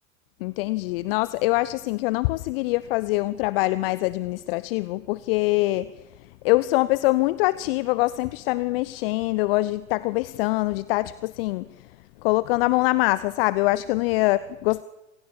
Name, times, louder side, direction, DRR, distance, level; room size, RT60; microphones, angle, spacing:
voice 1, 0.4-5.9 6.4-11.7 12.2-14.8, left 20 dB, 45° left, 0.9 m, -24 dB
28.0 x 25.5 x 7.1 m
figure-of-eight pair, 100°, 40 cm